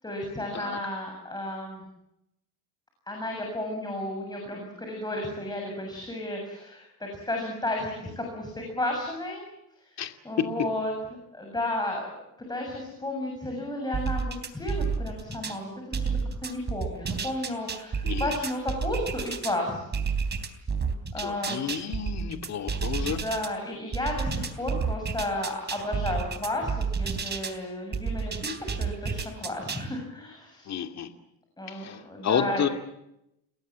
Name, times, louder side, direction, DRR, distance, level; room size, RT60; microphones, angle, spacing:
voice 1, 0.0-1.8 3.1-9.5 9.8-10.9 11.3-12.1 12.5-16.1 16.4-19.8 21.1-21.7 23.0-28.5 28.8-30.8 31.6-32.6, left 1 dB, 10° left, 1 dB, 7.4 m, -33 dB
sound 1, 13.9-15.6 15.9-19.6 19.9-23.5 23.9-27.6 27.9-29.9, right 5 dB, 25° right, 3.6 m, -30 dB
voice 2, 21.2-23.2 30.7-31.1 31.7-32.7, left 8 dB, 45° left, 6 dB, 2.5 m, -31 dB
30.0 x 21.0 x 7.5 m, 0.84 s
cardioid pair, 130°, 38 cm